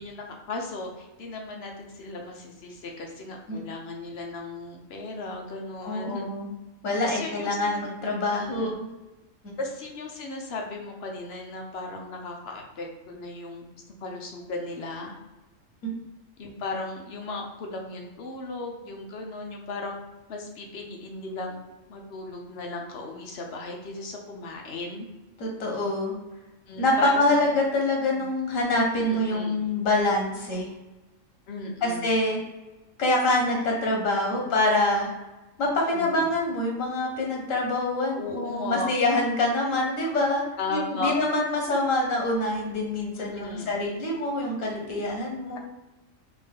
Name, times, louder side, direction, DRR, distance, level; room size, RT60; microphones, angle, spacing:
voice 1, 0.0-6.3 7.0-7.9 8.4-8.7 9.6-13.7 14.0-15.1 16.4-19.9 20.3-21.6 21.9-25.1 26.7-27.6 28.1-28.3 29.1-29.6 31.5-32.2 34.3-34.4 35.9-36.3 38.2-38.9 40.6-41.1 43.1-43.7, left 3 dB, 60° left, 1 dB, 0.8 m, -36 dB
voice 2, 5.8-6.5 6.8-8.9 9.4-9.5 15.8-15.9 25.4-26.1 26.8-30.7 31.8-32.4 33.0-35.1 35.6-40.4 40.7-45.6, left 2 dB, 85° left, 0 dB, 1.2 m, -25 dB
3.6 x 2.6 x 3.4 m, 1.1 s
omnidirectional pair, 1.3 m